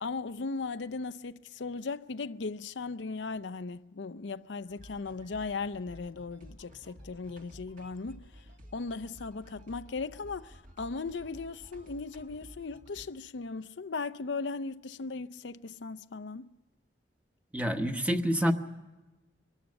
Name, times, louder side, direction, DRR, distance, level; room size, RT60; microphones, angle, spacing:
voice 1, 0.0-8.2 8.7-16.5, left 4 dB, 85° left, 0.6 m, -37 dB
sound 1, 4.7-13.1, equal, 50° right, 2.5 m, -52 dB
voice 2, 17.5-18.5, equal, 10° right, 1.2 m, -27 dB
23.5 x 13.0 x 9.7 m
head